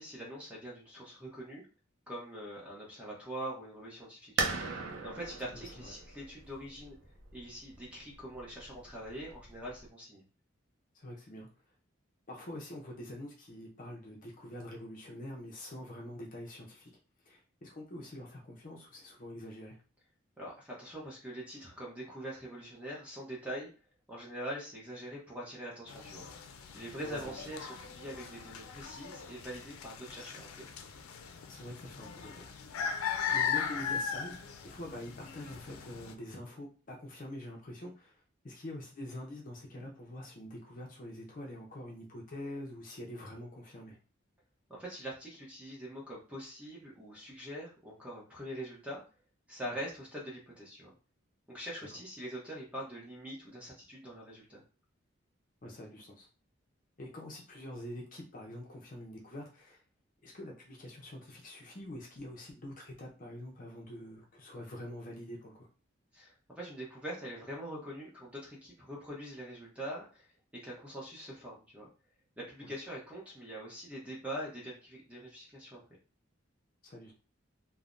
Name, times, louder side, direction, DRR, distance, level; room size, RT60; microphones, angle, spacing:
voice 1, 0.0-1.6 2.1-4.6 5.0-7.0 7.3-10.2 20.4-23.7 24.1-26.3 26.7-30.7 44.7-49.0 49.5-50.9 51.5-54.6 66.1-71.9 72.4-75.8, equal, 5° right, -4 dB, 0.7 m, -43 dB
sound 1, 4.4-9.9, right 4 dB, 75° right, 0.5 m, -39 dB
voice 2, 5.5-5.9 10.9-11.5 12.3-16.9 17.2-19.8 27.0-27.5 31.5-32.5 33.3-34.4 34.6-44.0 49.6-49.8 55.6-56.3 57.0-59.8 60.2-65.7 72.6-72.7 76.8-77.1, left 1 dB, 40° left, -1 dB, 0.6 m, -45 dB
sound 2, 25.9-36.1, left 7 dB, 90° left, 0.4 m, -38 dB
3.2 x 2.0 x 2.5 m, 0.35 s
head